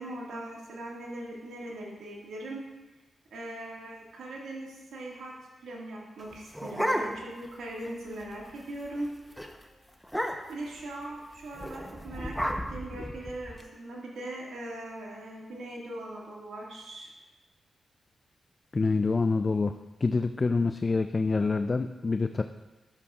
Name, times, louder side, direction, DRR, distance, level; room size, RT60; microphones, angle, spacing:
voice 1, 0.0-2.7 3.3-5.4 5.6-9.1 10.5-17.1, right 1 dB, 80° right, -3 dB, 1.9 m, -40 dB
sound 1, 6.2-7.5 7.8-7.9 8.2-8.5 8.9-9.1 9.4-9.5 10.0-10.7 11.5-13.6, equal, ahead, 0.8 m, -33 dB
voice 2, 18.7-19.7 20.0-22.4, left 3 dB, 40° left, 9 dB, 0.3 m, -26 dB
11.0 x 6.9 x 2.4 m, 1.1 s
supercardioid pair, 50°, 0 cm